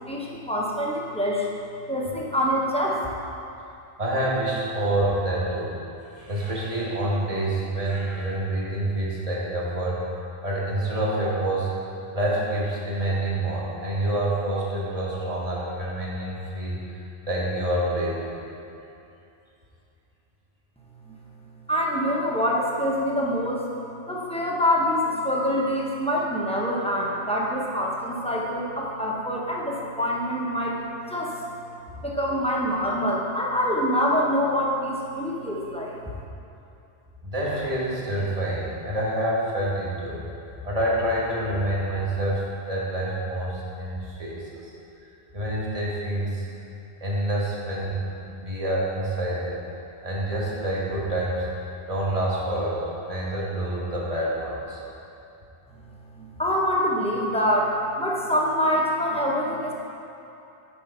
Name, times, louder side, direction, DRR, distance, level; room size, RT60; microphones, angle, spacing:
voice 1, 0.0-1.5 1.9-3.1 21.1-21.2 21.7-23.7 24.1-30.8 31.1-31.3 32.0-35.9 56.2-59.7, equal, 5° left, -4 dB, 0.8 m, -25 dB
voice 2, 4.0-5.8 6.2-10.0 10.4-11.7 12.1-18.4 37.2-40.2 40.6-44.7 45.3-46.5 47.0-48.0 48.4-49.6 50.0-51.5 51.9-54.8, right 1 dB, 35° right, -6 dB, 1.4 m, -27 dB
6.9 x 4.6 x 5.5 m, 2.8 s
omnidirectional pair, 1.1 m